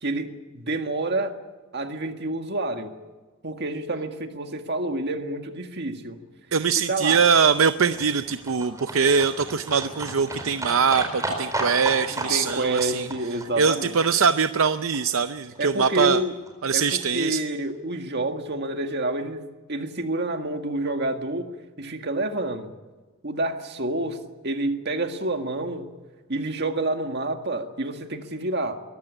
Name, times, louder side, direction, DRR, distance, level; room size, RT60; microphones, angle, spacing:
voice 1, 0.0-1.3 1.7-3.0 3.4-6.2 6.9-7.2 12.1-13.9 15.6-16.3 16.7-21.5 21.8-22.7 23.2-25.9 26.3-28.7, right 2 dB, 50° right, 5 dB, 1.9 m, -28 dB
voice 2, 6.5-13.1 13.6-16.2 16.6-17.4, right 6 dB, 70° right, 11 dB, 0.6 m, -22 dB
Livestock farm animals working animals, 6.8-15.0 15.2-15.3 15.6-15.7 15.9-16.0 16.2-16.3 16.5-16.6 16.8-16.9 17.1-17.2 17.4-17.5, right 2 dB, 15° right, 4.5 m, -34 dB
22.5 x 14.5 x 9.9 m, 1.3 s
head